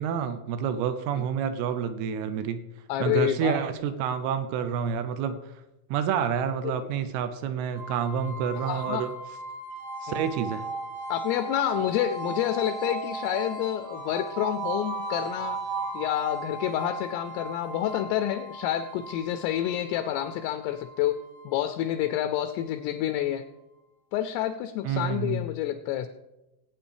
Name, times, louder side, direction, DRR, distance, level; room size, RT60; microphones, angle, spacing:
voice 1, 0.0-2.7 3.0-5.5 5.9-9.1 10.0-10.7 24.8-25.4, right 7 dB, 80° right, 11 dB, 2.3 m, -28 dB
voice 2, 2.9-3.6 6.6-6.8 8.6-9.0 10.1-10.2 11.1-15.6 15.9-23.5 24.1-26.1, left 11 dB, 85° left, 8 dB, 2.6 m, -28 dB
sound 1, 7.7-22.7, right 3 dB, 55° right, 2.3 m, -37 dB
19.5 x 8.9 x 3.4 m, 0.99 s
omnidirectional pair, 5.0 m